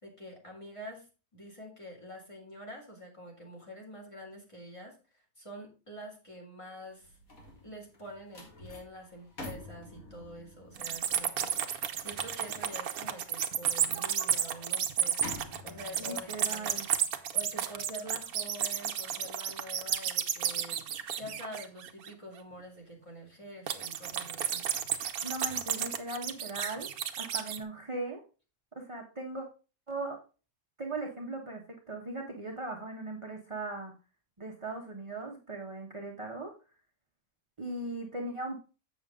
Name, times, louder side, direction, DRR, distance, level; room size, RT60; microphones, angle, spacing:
voice 1, 0.0-1.1 1.3-7.2 7.6-11.6 12.0-15.2 15.4-16.8 17.3-20.8 21.2-24.7, equal, 20° left, 0 dB, 2.3 m, -46 dB
sound 1, 6.8-20.1 20.5-20.8, left 2 dB, 55° left, 2.4 m, -50 dB
sound 2, 10.8-22.1 23.7-27.6, right 9 dB, 65° right, 1.2 m, -32 dB
voice 2, 16.0-16.9 25.2-26.9 27.2-28.2 28.7-29.5 29.9-30.2 30.8-33.9 34.4-36.5 37.6-38.6, right 2 dB, 25° right, 1 dB, 0.9 m, -38 dB
7.6 x 7.0 x 3.6 m, 0.33 s
omnidirectional pair, 1.7 m